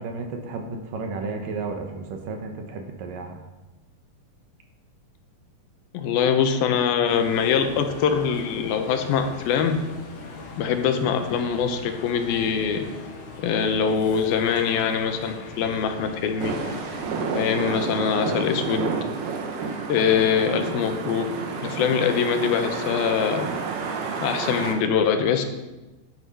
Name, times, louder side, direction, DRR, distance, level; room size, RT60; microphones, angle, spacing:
voice 1, 0.0-3.4, right 3 dB, 70° right, 4 dB, 2.7 m, -33 dB
voice 2, 5.9-9.8 10.6-12.9 13.4-16.6 17.3-18.9 19.9-21.3 21.6-23.5 24.2-25.4, left 7 dB, 80° left, 6 dB, 2.8 m, -23 dB
sound 1, 7.1-17.1, left 3 dB, 55° left, 1.4 m, -40 dB
sound 2, 16.4-24.8, right 4 dB, 90° right, 3.1 m, -30 dB
11.0 x 8.9 x 5.5 m, 1.1 s
omnidirectional pair, 4.3 m